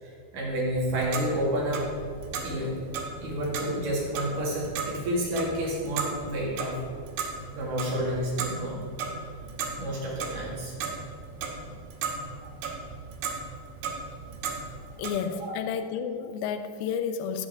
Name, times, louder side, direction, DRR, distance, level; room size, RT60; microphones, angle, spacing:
voice 1, 0.0-1.8 2.4-2.8 3.2-6.8 7.5-8.9 9.8-10.7 12.4-12.5 15.4-15.5, equal, 55° right, -4 dB, 3.2 m, -30 dB
Clock, 0.7-15.1, right 5 dB, 90° right, 3.5 m, -36 dB
voice 2, 15.0-17.5, left 7 dB, 80° left, 9 dB, 2.2 m, -31 dB
14.0 x 8.6 x 3.6 m, 2.3 s
omnidirectional pair, 4.9 m